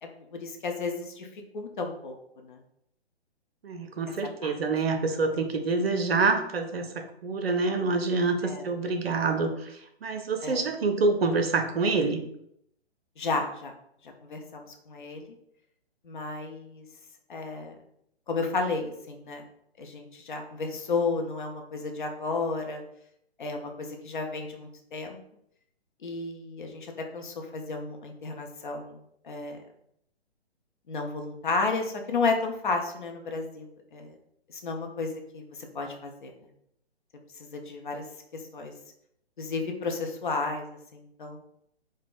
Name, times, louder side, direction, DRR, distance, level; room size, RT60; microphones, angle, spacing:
voice 1, 0.0-2.2 2.4-2.6 4.4-4.5 8.4-8.6 10.4-10.6 13.2-13.7 14.0-15.3 16.0-16.9 17.3-17.7 18.3-19.4 19.8-22.8 23.4-25.2 26.0-29.0 29.2-29.6 30.9-34.1 34.5-36.3 37.4-38.0 38.3-38.8 39.4-41.4, left 3 dB, 50° left, 3 dB, 0.5 m, -32 dB
voice 2, 3.6-12.2, right 3 dB, 65° right, 6 dB, 0.5 m, -27 dB
3.3 x 2.0 x 2.4 m, 0.74 s
figure-of-eight pair, 130°, 32 cm